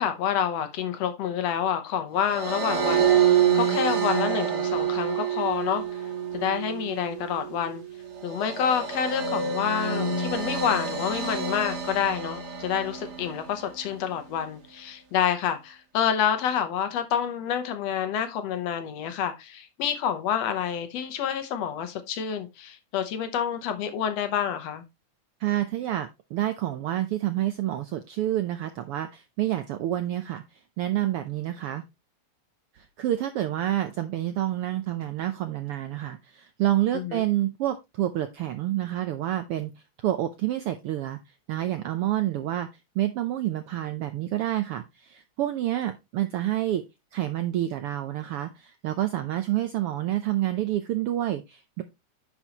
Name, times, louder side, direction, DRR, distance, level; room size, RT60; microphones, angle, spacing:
voice 1, 0.0-5.8 6.3-7.8 8.2-24.9 36.9-37.2, left 8 dB, 70° left, 1.9 m, -28 dB
sound 1, 2.3-13.6, right 7 dB, 45° right, 1.7 m, -27 dB
voice 2, 25.4-31.8 32.7-39.7 40.0-41.2 41.5-42.7 42.9-46.8 47.1-51.8, right 13 dB, 75° right, 1.3 m, -28 dB
10.0 x 6.2 x 2.9 m
omnidirectional pair, 3.3 m